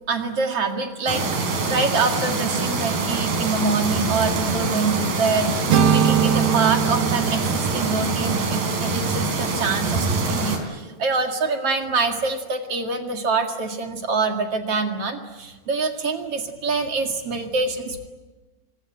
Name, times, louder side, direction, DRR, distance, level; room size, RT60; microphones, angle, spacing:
voice 1, 0.1-1.3 1.7-18.1, right 4 dB, 45° right, 4 dB, 2.6 m, -25 dB
sound 1, 1.1-10.6, right 3 dB, 70° right, 5.4 m, -25 dB
sound 2, 5.7-9.7, right 8 dB, 85° right, 3.4 m, -23 dB
25.0 x 22.0 x 9.1 m, 1.2 s
omnidirectional pair, 4.4 m